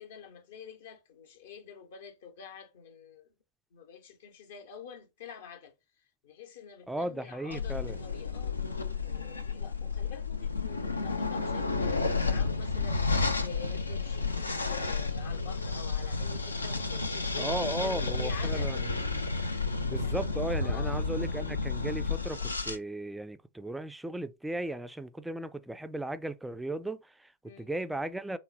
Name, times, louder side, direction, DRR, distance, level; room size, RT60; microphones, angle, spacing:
voice 1, 0.0-3.3 3.7-8.6 9.0-18.7 20.0-20.2 20.6-21.0 27.4-27.7, left 7 dB, 60° left, 0.8 m, -48 dB
voice 2, 6.9-8.0 17.4-19.0 19.8-27.3 27.6-28.4, right 1 dB, 5° right, 0.3 m, -36 dB
sound 1, 7.5-22.8, left 4 dB, 80° left, 0.5 m, -31 dB
3.7 x 2.1 x 3.8 m
figure-of-eight pair, 90°, 0 cm